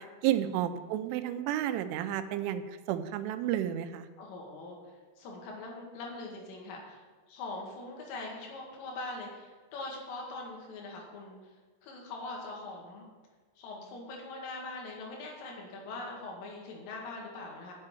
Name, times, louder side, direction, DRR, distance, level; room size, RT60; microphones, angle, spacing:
voice 1, 0.0-4.1, right 11 dB, 85° right, 9 dB, 3.1 m, -31 dB
voice 2, 4.2-7.0 7.3-11.5 11.8-13.1 13.6-17.7, left 2 dB, 90° left, -1 dB, 4.5 m, -42 dB
8.0 x 7.6 x 7.6 m, 1.4 s
omnidirectional pair, 5.5 m